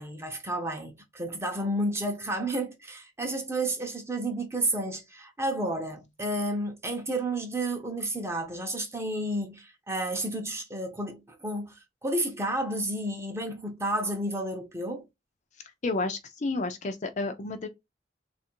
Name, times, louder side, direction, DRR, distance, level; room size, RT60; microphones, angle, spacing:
voice 1, 0.0-15.1, right 1 dB, 15° right, 0.7 m, -31 dB
voice 2, 15.8-17.7, left 3 dB, 40° left, 0.5 m, -31 dB
3.4 x 2.5 x 4.4 m
head